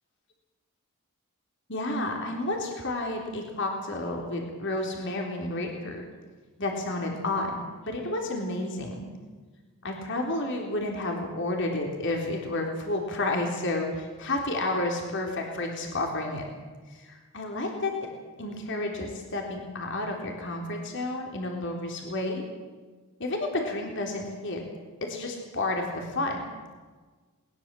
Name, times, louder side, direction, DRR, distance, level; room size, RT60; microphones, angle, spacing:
voice 1, 1.7-6.0 6.6-9.1 9.8-16.5 16.9-18.1 18.4-22.4 23.2-24.6 25.0-26.4, left 2 dB, 55° left, 1 dB, 3.8 m, -31 dB
21.0 x 20.5 x 7.7 m, 1.4 s
head